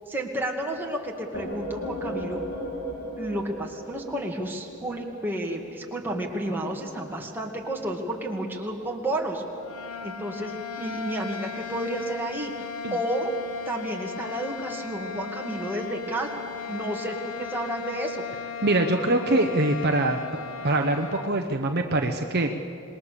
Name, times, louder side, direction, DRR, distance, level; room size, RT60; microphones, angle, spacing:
voice 1, 0.1-2.4 3.2-9.4 10.0-13.3 13.7-18.2, right 1 dB, 10° right, -1 dB, 2.3 m, -31 dB
sound 1, 1.3-4.9, equal, 50° left, 2.9 m, -35 dB
sound 2, 9.5-21.4, left 7 dB, 75° left, 1.1 m, -37 dB
voice 2, 18.6-20.2 20.6-22.5, right 2 dB, 50° right, 5 dB, 1.0 m, -23 dB
26.5 x 20.5 x 7.0 m, 2.5 s
head